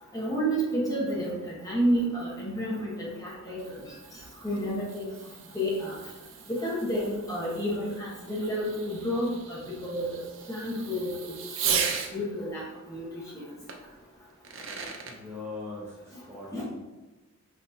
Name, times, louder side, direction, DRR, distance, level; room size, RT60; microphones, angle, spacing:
voice 1, 0.1-3.9 4.4-5.1 5.5-6.0 6.5-10.2 10.5-11.3 11.6-11.8 12.1-13.4 16.5-16.6, equal, 15° left, -5 dB, 1.0 m, -30 dB
Fireworks, 3.4-12.1 13.7-13.8 14.3-15.2, right 7 dB, 60° right, 0.5 m, -37 dB
voice 2, 15.0-16.6, left 3 dB, 10° right, -8 dB, 0.8 m, -40 dB
5.7 x 2.9 x 2.7 m, 1.1 s
head